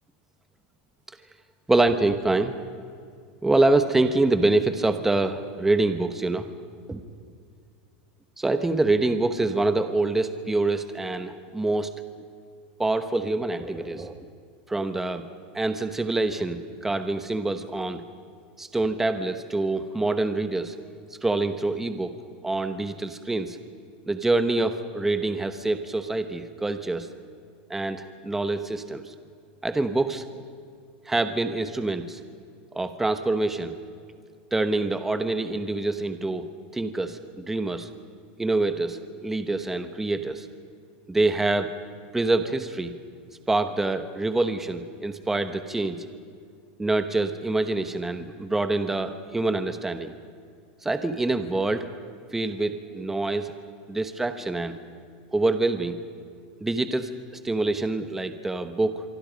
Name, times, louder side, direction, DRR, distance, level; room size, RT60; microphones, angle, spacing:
voice 1, 1.7-2.6 3.4-6.5 6.9-7.0 8.4-11.9 12.8-14.3 14.7-15.3 15.5-18.0 18.6-20.7 21.2-22.1 22.4-23.6 24.1-27.1 27.7-29.1 29.6-30.2 31.1-32.2 32.7-33.8 34.5-36.5 36.7-37.9 38.4-40.5 41.1-41.7 42.1-43.0 43.5-46.0 46.8-50.1 50.8-51.9 52.3-53.5 53.9-54.8 55.3-56.0 56.6-57.1 57.4-59.0, right 2 dB, 5° right, 9 dB, 0.9 m, -25 dB
26.0 x 23.5 x 5.2 m, 2.2 s
supercardioid pair, 160°, 5 cm